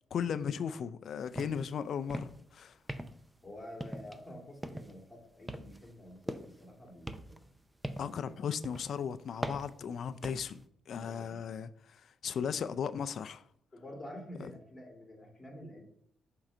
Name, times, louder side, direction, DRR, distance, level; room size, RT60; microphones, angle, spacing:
voice 1, 0.1-2.8 8.0-13.4 14.4-14.5, left 7 dB, 60° left, 0.4 m, -36 dB
sound 1, 1.3-1.7 2.0-2.5 2.9-3.4 3.8-4.3 4.6-5.0 5.5-6.7 7.1-8.2 8.6-8.9 9.4-10.6, right 1 dB, 10° right, 0.4 m, -41 dB
voice 2, 3.4-7.5 8.1-8.2 11.0-11.4 13.7-15.9, equal, 15° left, 2.1 m, -49 dB
5.9 x 3.8 x 4.4 m
cardioid pair, 90°, 0 cm